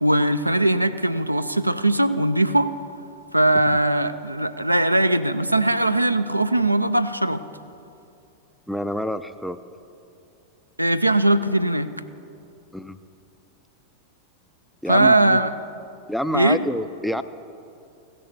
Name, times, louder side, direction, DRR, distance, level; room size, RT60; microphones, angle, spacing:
voice 1, 0.0-2.7 3.3-7.4 10.8-11.9 14.9-15.5 16.3-16.6, right 1 dB, 85° right, 10 dB, 0.4 m, -20 dB
voice 2, 8.7-9.6 12.7-13.0 14.8-15.4 16.1-17.2, equal, ahead, 11 dB, 0.4 m, -27 dB
15.5 x 6.8 x 7.2 m, 2.6 s
figure-of-eight pair, 90°, 0 cm